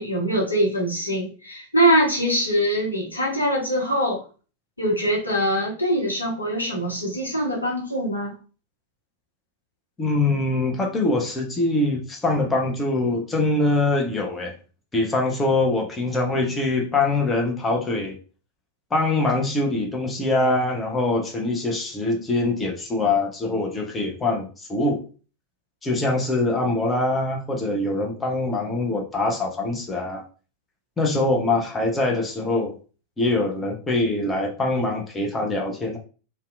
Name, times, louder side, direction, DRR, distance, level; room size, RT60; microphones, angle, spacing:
voice 1, 0.0-4.2 4.8-8.4, equal, 80° left, -3 dB, 0.8 m, -23 dB
voice 2, 10.0-14.5 14.9-18.2 18.9-25.0 25.8-30.2 31.0-32.7 33.2-36.0, left 2 dB, 15° left, 0 dB, 0.6 m, -23 dB
2.7 x 2.2 x 2.4 m, 0.36 s
figure-of-eight pair, 90°, 0 cm